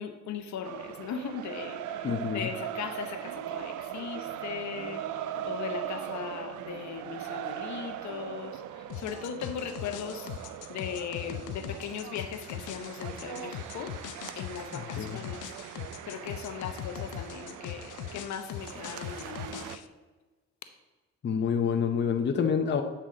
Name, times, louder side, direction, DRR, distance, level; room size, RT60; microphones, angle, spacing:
voice 1, 0.0-10.3 10.7-13.9 14.4-15.4 16.0-19.8, left 7 dB, 65° left, 7 dB, 0.9 m, -38 dB
sound 1, 0.6-19.8, right 11 dB, 75° right, 0.5 m, -40 dB
voice 2, 2.0-2.5 14.7-15.2 21.2-22.8, left 7 dB, 35° left, 5 dB, 0.7 m, -28 dB
sound 2, 8.9-19.9, left 11 dB, 85° left, 0.5 m, -41 dB
9.2 x 5.6 x 3.8 m, 1.3 s
cardioid pair, 90°, 30 cm